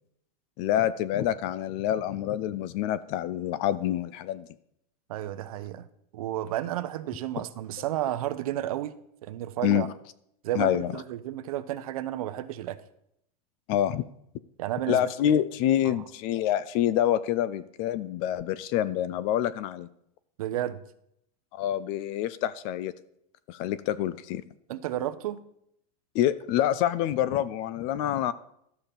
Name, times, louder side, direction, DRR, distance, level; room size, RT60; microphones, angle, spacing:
voice 1, 0.6-4.5 9.6-9.9 10.5-10.9 13.7-14.0 14.9-19.9 21.5-22.9 23.5-24.4 26.1-28.3, left 11 dB, 30° left, 0.3 m, -27 dB
voice 2, 5.1-5.9 6.1-9.9 10.4-12.8 14.6-15.0 15.8-16.0 20.4-20.8 24.7-25.4, right 13 dB, 65° right, 0.9 m, -32 dB
13.0 x 5.8 x 6.9 m
supercardioid pair, 170°, 20 cm